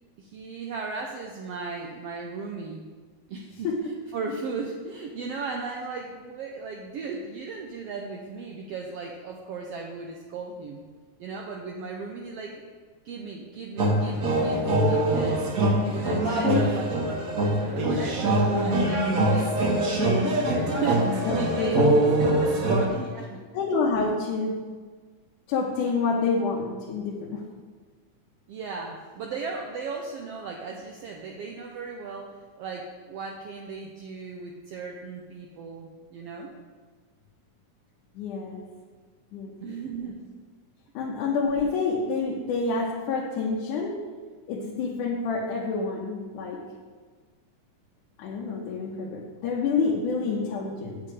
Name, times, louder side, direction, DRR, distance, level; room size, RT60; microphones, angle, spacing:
voice 1, 0.2-2.9 3.3-10.8 11.2-12.6 13.0-19.7 20.6-21.9 22.9-23.4 28.5-36.5 39.6-40.2, right 4 dB, 75° right, 1 dB, 1.4 m, -36 dB
sound 1, 13.8-22.8, right 1 dB, 60° right, 0.8 m, -23 dB
voice 2, 21.3-21.9 23.5-24.6 25.5-27.4 38.2-38.6 39.3-39.5 40.9-44.0 44.5-46.6 48.2-51.0, left 4 dB, 85° left, -3 dB, 2.5 m, -28 dB
8.2 x 7.4 x 4.8 m, 1.5 s
omnidirectional pair, 3.5 m